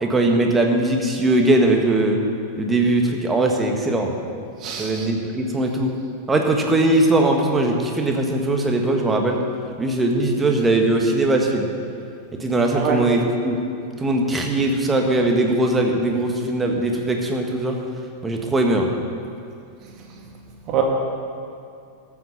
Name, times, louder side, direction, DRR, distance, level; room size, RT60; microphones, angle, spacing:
voice 1, 0.0-2.2 2.6-4.1 4.8-5.9 6.3-9.4 9.8-11.7 12.4-13.6 14.0-17.8 18.2-18.9, right 2 dB, 15° right, 2 dB, 1.6 m, -20 dB
voice 2, 4.6-5.1 12.8-13.0 20.7-20.8, right 9 dB, 35° right, 0 dB, 2.1 m, -23 dB
14.0 x 7.3 x 6.6 m, 2.6 s
figure-of-eight pair, 90°, 0 cm